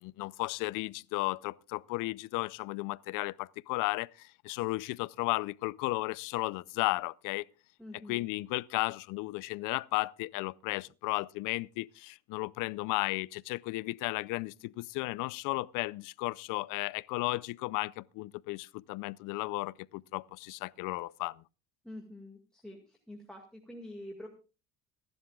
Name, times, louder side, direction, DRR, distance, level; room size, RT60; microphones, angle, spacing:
voice 1, 0.0-7.5 8.1-21.4, left 21 dB, 85° left, 0.5 m, -34 dB
voice 2, 7.8-8.3 21.8-24.3, left 1 dB, ahead, 2.0 m, -46 dB
25.0 x 11.5 x 2.3 m
cardioid pair, 145°, 31 cm